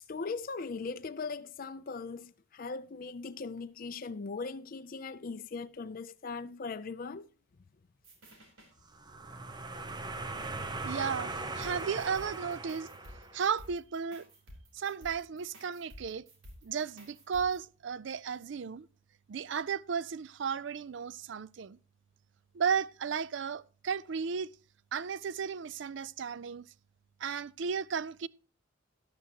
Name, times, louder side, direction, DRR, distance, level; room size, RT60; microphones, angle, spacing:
voice 1, 0.0-7.3, left 4 dB, 45° left, 0.5 m, -39 dB
sound 1, 8.0-8.7 11.6-17.6, equal, 80° right, 3.7 m, -53 dB
sound 2, 8.9-13.6, right 3 dB, 20° right, 0.8 m, -39 dB
voice 2, 10.8-12.9 13.3-14.3 14.7-16.2 16.6-18.9 19.3-21.8 22.5-24.5 24.9-26.6 27.2-28.3, right 6 dB, 60° right, 0.4 m, -34 dB
12.5 x 11.0 x 2.9 m
head